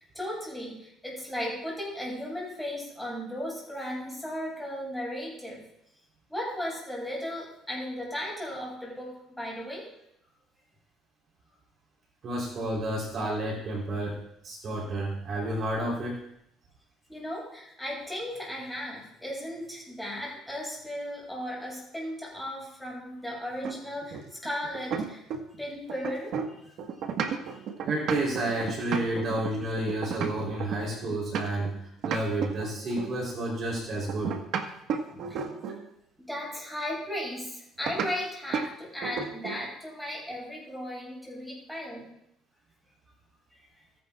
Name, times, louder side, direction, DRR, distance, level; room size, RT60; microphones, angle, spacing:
voice 1, 0.1-5.6 6.3-9.9 17.1-25.2 25.6-26.7 27.5-27.7 32.9-33.0 35.1-35.4 36.2-42.1 43.6-43.7, equal, 5° left, -4 dB, 6.1 m, -36 dB
voice 2, 12.2-16.2 27.8-31.8 32.0-34.4 35.5-35.6, right 1 dB, 40° right, -2 dB, 3.7 m, -30 dB
sound 1, 23.6-25.6 25.9-31.7 32.0-33.2 34.1-35.9 37.9-38.1 38.5-38.7 39.0-39.7, right 6 dB, 55° right, 1.5 m, -33 dB
29.0 x 11.0 x 2.5 m, 0.77 s
cardioid pair, 165°, 0 cm